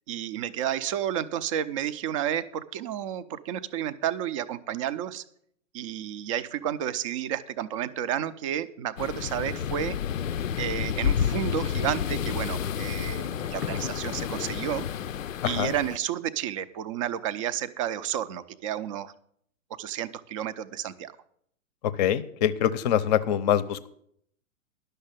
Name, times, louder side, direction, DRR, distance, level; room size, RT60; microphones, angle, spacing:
voice 1, 0.1-5.2 5.7-10.0 10.6-14.9 15.4-19.1 19.8-21.1, right 10 dB, 25° right, 14 dB, 0.4 m, -31 dB
sound 1, 9.0-16.0, left 8 dB, 75° left, 0.5 m, -30 dB
voice 2, 15.4-15.7 21.8-23.9, left 10 dB, 30° left, 16 dB, 0.6 m, -24 dB
11.0 x 6.6 x 7.5 m, 0.68 s
figure-of-eight pair, 110°, 40 cm